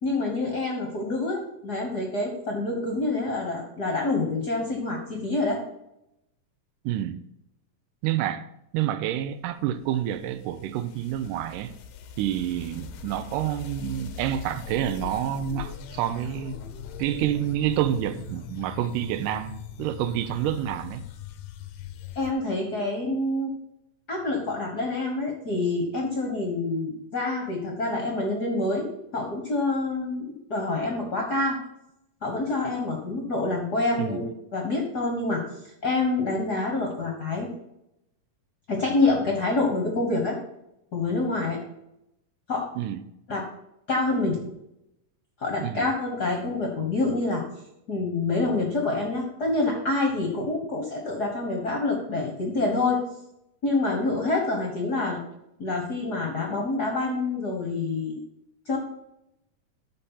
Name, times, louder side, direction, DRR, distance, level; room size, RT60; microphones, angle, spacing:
voice 1, 0.0-5.6 22.1-23.5 24.1-31.6 32.2-35.4 35.8-37.5 38.7-40.4 40.9-41.6 42.5-42.7 43.3-43.4 43.9-44.4 45.4-47.4 47.9-53.0 53.6-55.2 55.6-58.2 58.7-58.8, left 2 dB, 50° left, 1.2 m, -27 dB
voice 2, 6.9-7.2 8.0-8.5 8.7-11.7 12.2-16.6 17.0-21.1 34.0-34.2 42.8-43.0 45.6-45.9, right 11 dB, 85° right, 2.2 m, -28 dB
sound 1, 9.5-22.3, left 8 dB, 80° left, 1.6 m, -41 dB
13.0 x 4.4 x 5.7 m
omnidirectional pair, 3.8 m